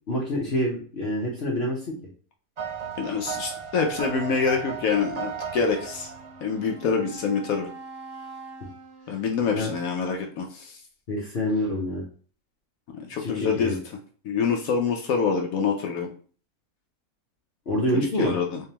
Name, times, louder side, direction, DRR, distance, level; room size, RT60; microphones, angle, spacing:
voice 1, 0.1-1.9 9.5-9.7 11.1-12.0 13.2-13.8 17.7-18.3, left 1 dB, 50° left, -4 dB, 1.0 m, -26 dB
sound 1, 2.6-6.8, right 7 dB, 85° right, 0.3 m, -35 dB
voice 2, 3.0-6.1 6.4-7.7 9.1-10.8 12.9-13.8 14.2-16.1 17.9-18.6, left 5 dB, 75° left, 3 dB, 1.1 m, -26 dB
Wind instrument woodwind instrument, 5.7-10.7, right 3 dB, 10° left, 1.8 m, -45 dB
3.7 x 3.4 x 2.9 m, 0.42 s
omnidirectional pair, 1.5 m